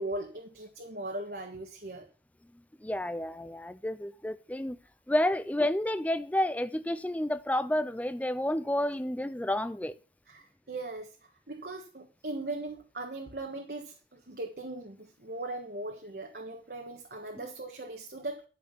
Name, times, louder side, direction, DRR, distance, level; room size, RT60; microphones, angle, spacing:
voice 1, 0.0-2.1 10.3-18.5, right 2 dB, 55° right, 1.5 m, -39 dB
voice 2, 2.8-4.8 5.1-10.0, left 1 dB, 10° left, 0.4 m, -30 dB
12.5 x 6.4 x 5.3 m
head